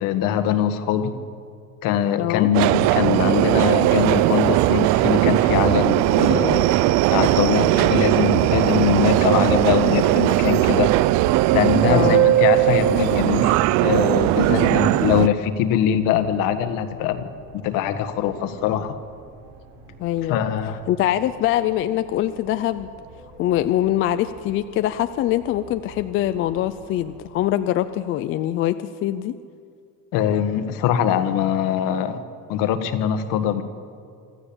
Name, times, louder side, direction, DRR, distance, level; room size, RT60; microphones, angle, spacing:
voice 1, 0.0-1.1 1.8-6.7 7.1-10.9 11.5-17.3 17.5-19.0 20.3-20.8 30.1-32.2 32.5-33.6, left 9 dB, 60° left, 9 dB, 1.7 m, -22 dB
voice 2, 2.2-2.5 7.7-7.9 11.9-12.2 14.5-14.7 20.0-20.4 20.9-22.9 23.4-29.4, left 13 dB, 35° left, 11 dB, 0.5 m, -23 dB
Subway metro underground, 2.5-15.3, right 16 dB, 50° right, 0.5 m, -18 dB
sound 1, 8.4-27.2, right 3 dB, 85° right, 7.5 m, -48 dB
25.5 x 14.5 x 8.8 m, 2.4 s
cardioid pair, 175°, 37 cm